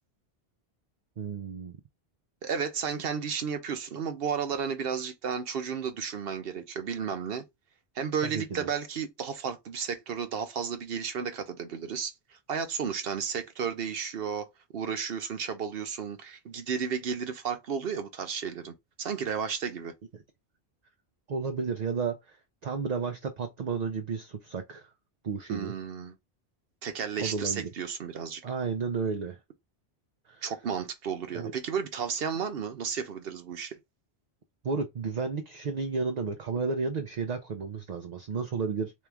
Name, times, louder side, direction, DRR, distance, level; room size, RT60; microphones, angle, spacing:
voice 1, 1.2-1.8 8.3-8.7 21.3-22.4 22.6-24.9 25.2-25.7 27.2-27.7 28.4-29.4 30.3-30.4 31.3-31.5 34.6-38.9, right 5 dB, 50° right, 0.6 m, -32 dB
voice 2, 2.4-7.4 7.9-12.1 12.5-14.5 14.7-19.9 25.5-26.1 26.8-28.4 30.4-33.7, right 6 dB, 65° right, 0.9 m, -33 dB
3.6 x 3.1 x 3.4 m
omnidirectional pair, 1.1 m